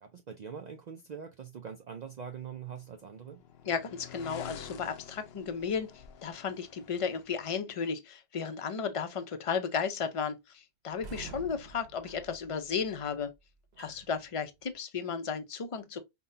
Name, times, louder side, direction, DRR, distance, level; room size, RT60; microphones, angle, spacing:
voice 1, 0.0-3.4, right 7 dB, 55° right, 0.5 m, -43 dB
sound 1, 2.6-7.5, left 8 dB, 70° left, 0.8 m, -49 dB
voice 2, 3.7-13.3 13.8-16.0, left 6 dB, 40° left, 0.6 m, -34 dB
sound 2, 10.9-14.8, right 4 dB, 80° right, 1.1 m, -50 dB
5.5 x 2.2 x 2.6 m
omnidirectional pair, 1.1 m